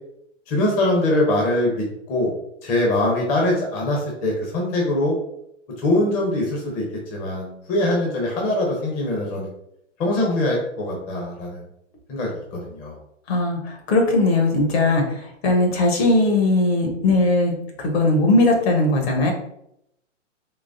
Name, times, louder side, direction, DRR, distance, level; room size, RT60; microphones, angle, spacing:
voice 1, 0.5-2.3 2.6-5.2 5.8-6.9 7.1-9.5 10.0-11.6 12.1-13.0, left 1 dB, 20° left, -1 dB, 0.7 m, -22 dB
voice 2, 13.3-19.3, left 2 dB, 55° left, 2 dB, 1.2 m, -19 dB
3.8 x 3.1 x 2.6 m, 0.76 s
hypercardioid pair, 135°, 38 cm